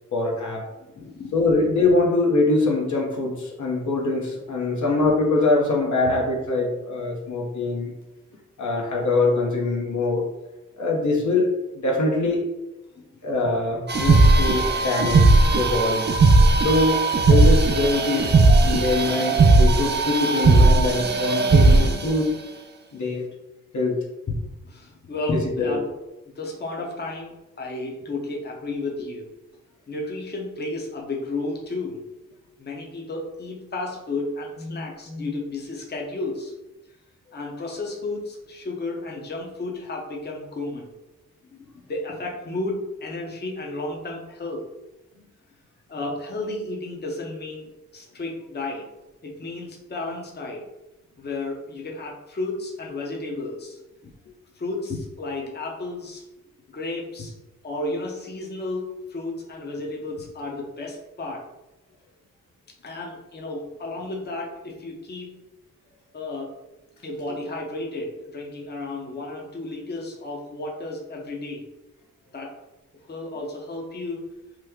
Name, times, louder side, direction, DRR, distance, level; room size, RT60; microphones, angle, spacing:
voice 1, 0.1-0.6 1.3-7.9 8.6-10.3 10.8-11.5 11.7-12.4 13.2-16.2 16.6-18.4 18.6-22.3 22.9-23.3 23.7-24.0 25.6-25.8, left 2 dB, 60° left, -1 dB, 0.9 m, -23 dB
voice 2, 0.9-1.3 13.0-13.1 13.4-13.5 24.3-25.9 26.4-29.3 29.9-32.0 32.6-36.5 37.3-40.9 41.4-44.6 45.9-48.9 49.2-50.7 51.2-54.1 54.5-56.2 56.7-57.3 57.6-61.4 62.8-65.4 66.1-66.5 67.0-71.6 72.3-72.5 73.1-74.2, left 2 dB, 30° left, -1 dB, 0.8 m, -32 dB
sound 1, 13.9-22.1, right 3 dB, 35° right, 0.5 m, -17 dB
3.1 x 2.1 x 3.6 m, 1.0 s
cardioid pair, 55°, 32 cm